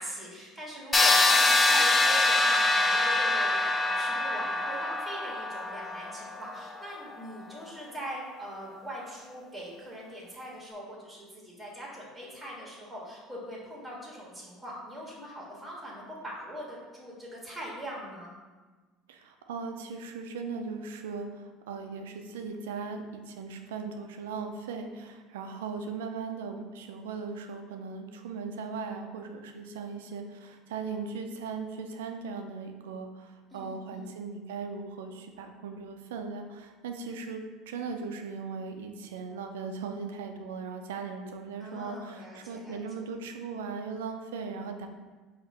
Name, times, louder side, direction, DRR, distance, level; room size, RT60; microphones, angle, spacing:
voice 1, 0.0-18.3 33.5-34.1 41.6-42.8, equal, ahead, -5 dB, 1.5 m, -41 dB
sound 1, 0.9-6.7, left 2 dB, 25° left, 0.5 m, -24 dB
voice 2, 19.1-44.9, right 5 dB, 85° right, 5 dB, 0.4 m, -38 dB
5.0 x 2.5 x 4.2 m, 1.3 s
hypercardioid pair, 80°, 0 cm